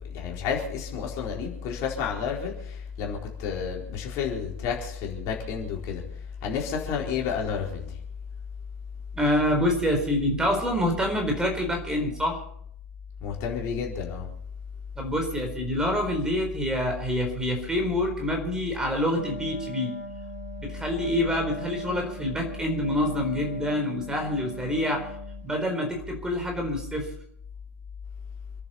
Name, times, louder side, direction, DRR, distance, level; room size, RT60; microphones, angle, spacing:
voice 1, 0.1-6.0 6.4-7.9 13.2-14.3, left 6 dB, 40° left, 0 dB, 4.4 m, -31 dB
voice 2, 9.1-12.4 15.0-19.9 20.6-25.1 25.4-27.1, left 1 dB, 10° right, 3 dB, 4.2 m, -26 dB
Wind instrument woodwind instrument, 19.1-25.6, equal, 85° left, 3.3 m, -40 dB
28.5 x 10.5 x 4.3 m, 0.67 s
figure-of-eight pair, 95°, 8 cm